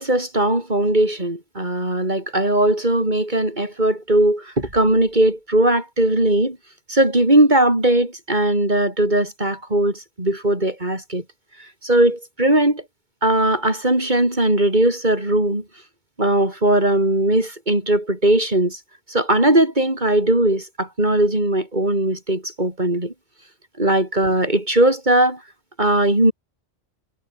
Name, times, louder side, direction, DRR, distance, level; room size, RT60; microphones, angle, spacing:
voice 1, 0.0-6.6 6.9-11.2 11.8-12.8 13.2-15.6 16.2-18.8 19.1-23.1 23.8-25.4 25.8-26.3, right 1 dB, 40° right, 6.4 m, -19 dB
omnidirectional pair, 1.2 m